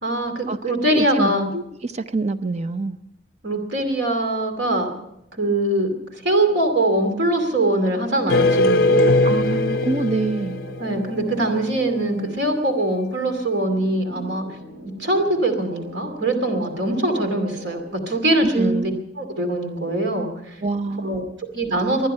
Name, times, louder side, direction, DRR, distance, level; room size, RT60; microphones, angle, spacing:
voice 1, 0.0-1.5 3.4-4.9 5.3-5.9 6.2-9.2 10.8-14.4 15.0-18.9 19.2-20.5 21.0-21.2 21.5-22.1, right 1 dB, 75° right, 5 dB, 2.6 m, -22 dB
voice 2, 0.9-3.0 9.2-10.6 18.4-19.0 20.6-21.4, right 3 dB, 35° right, 12 dB, 0.6 m, -26 dB
sound 1, 6.4-17.9, left 1 dB, 55° right, 3.0 m, -40 dB
sound 2, 8.3-11.3, left 2 dB, 55° left, 0.6 m, -20 dB
24.0 x 9.8 x 5.5 m, 0.83 s
head